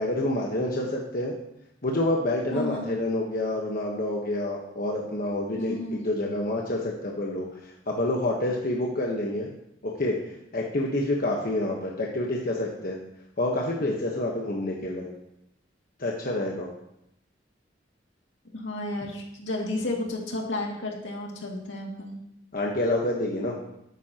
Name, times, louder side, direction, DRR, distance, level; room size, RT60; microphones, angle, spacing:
voice 1, 0.0-1.3 1.8-9.5 9.8-10.2 10.5-13.0 13.4-15.1 16.0-16.7 22.5-23.6, left 1 dB, 50° left, -1 dB, 1.2 m, -28 dB
voice 2, 2.5-2.9 5.6-6.0 18.5-22.2, left 2 dB, 80° left, -1 dB, 2.3 m, -32 dB
12.5 x 9.3 x 2.9 m, 0.81 s
head